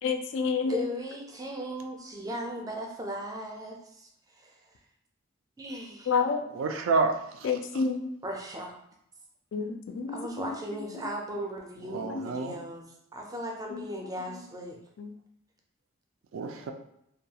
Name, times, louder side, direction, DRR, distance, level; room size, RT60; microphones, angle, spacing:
voice 1, 0.0-0.9 6.1-6.4 7.4-8.1 9.5-11.1 12.0-12.3 13.7-13.9 14.3-14.4 15.0-15.1, left 5 dB, 65° left, 6 dB, 0.3 m, -30 dB
voice 2, 0.6-4.1 4.4-4.6 5.6-6.1 8.2-8.7 10.1-12.9 13.1-14.8, equal, 20° right, 1 dB, 0.4 m, -37 dB
voice 3, 6.6-7.5 11.9-12.5 16.3-16.7, right 4 dB, 90° right, 5 dB, 0.3 m, -29 dB
2.3 x 2.3 x 2.7 m, 0.77 s
head